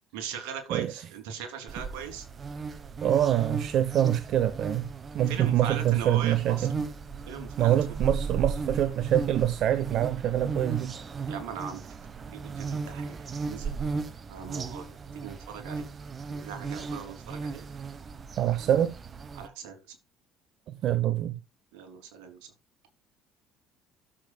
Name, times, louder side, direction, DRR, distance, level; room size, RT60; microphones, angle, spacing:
voice 1, 0.1-2.3 5.3-6.7 7.3-8.0 11.3-11.9 12.3-13.8 14.3-14.8 15.1-15.8 16.3-17.7 19.3-20.0 21.7-22.5, right 7 dB, 85° right, 3.2 m, -39 dB
sound 1, 1.7-19.5, right 4 dB, 40° right, 1.3 m, -36 dB
voice 2, 3.0-4.9 5.1-6.7 7.6-11.0 18.4-18.9 20.7-21.4, right 11 dB, 60° right, 0.9 m, -25 dB
12.5 x 7.5 x 2.4 m
supercardioid pair, 80°, 0 cm